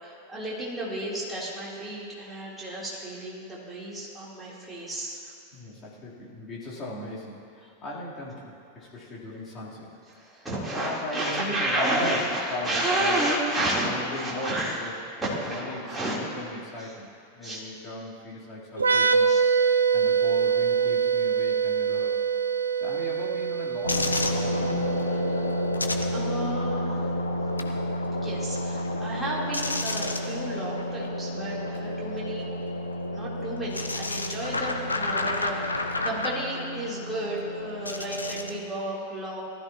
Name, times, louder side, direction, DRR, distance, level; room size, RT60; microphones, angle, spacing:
voice 1, 0.0-5.3 10.1-14.8 15.2-16.2 16.8-16.9 17.4-17.6 19.3-19.4 25.1-25.6 26.1-27.0 28.2-32.4 33.1-39.4, right 1 dB, 10° right, -7 dB, 3.6 m, -31 dB
voice 2, 5.5-9.9 10.6-12.2 12.5-13.2 13.9-14.9 15.3-16.1 16.3-17.1 17.3-19.3 19.9-22.1 22.8-25.1, left 1 dB, 25° left, -7 dB, 3.6 m, -37 dB
sound 1, 18.8-26.3, right 6 dB, 75° right, 0.5 m, -25 dB
sound 2, 23.8-38.6, left 1 dB, 80° left, 0.8 m, -30 dB
18.5 x 13.0 x 3.0 m, 2.4 s
figure-of-eight pair, 90°, 0 cm